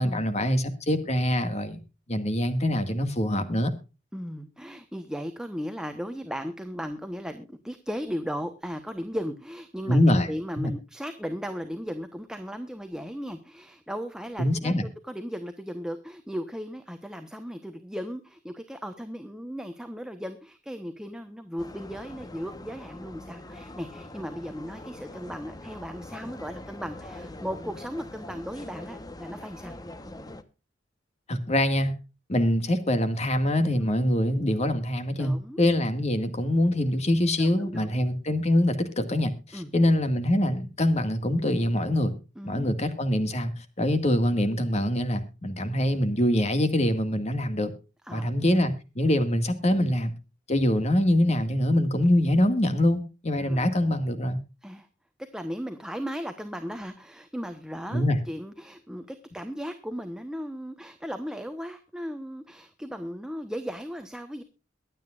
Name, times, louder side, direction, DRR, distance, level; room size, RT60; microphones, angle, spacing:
voice 1, 0.0-1.8 2.1-3.7 9.9-10.3 10.6-10.7 14.4-14.9 31.3-31.9 32.3-42.1 42.4-47.7 48.1-50.1 50.5-54.4 57.9-58.2, left 1 dB, 35° left, 9 dB, 2.0 m, -24 dB
voice 2, 4.1-10.0 10.3-14.7 15.0-29.7 33.8-34.1 35.2-35.6 37.4-38.0 39.5-39.7 42.4-42.7 48.1-48.3 53.4-53.7 54.6-54.9 55.3-64.4, equal, 5° right, 7 dB, 1.1 m, -36 dB
sound 1, 21.6-30.4, left 1 dB, 20° left, 1.1 m, -43 dB
23.0 x 9.1 x 2.5 m, 0.30 s
head